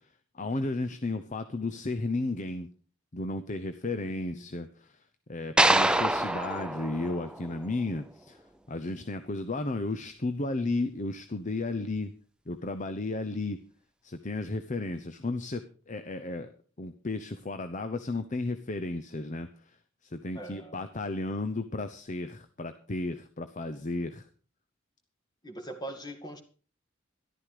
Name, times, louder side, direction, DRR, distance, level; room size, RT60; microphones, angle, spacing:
voice 1, 0.3-2.7 3.1-5.0 5.3-8.4 8.7-12.1 12.5-13.6 14.0-15.6 15.9-16.5 16.8-19.8 20.0-24.3, left 2 dB, 40° left, 9 dB, 0.8 m, -33 dB
voice 2, 3.9-4.5 20.3-20.8 25.4-26.4, right 1 dB, 20° left, 6 dB, 2.1 m, -42 dB
sound 1, 5.6-7.9, right 1 dB, 5° right, 0.6 m, -26 dB
13.5 x 12.0 x 4.9 m, 0.41 s
head